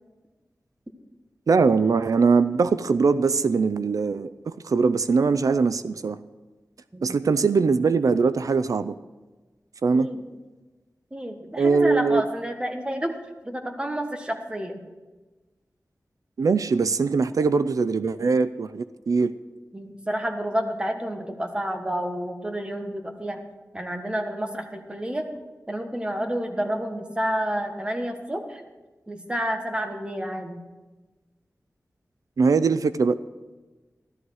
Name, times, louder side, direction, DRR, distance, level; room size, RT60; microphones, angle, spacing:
voice 1, 1.5-6.2 7.0-8.9 9.8-10.1 11.6-12.2 16.4-19.3 32.4-33.2, right 4 dB, 80° right, 13 dB, 0.4 m, -21 dB
voice 2, 6.9-7.3 9.9-10.2 11.1-13.1 13.4-14.8 17.4-17.5 19.7-23.4 23.7-25.2 25.7-28.6 29.1-30.6, equal, 15° right, 5 dB, 1.5 m, -30 dB
13.5 x 12.5 x 4.8 m, 1.2 s
wide cardioid pair, 85°, 6 cm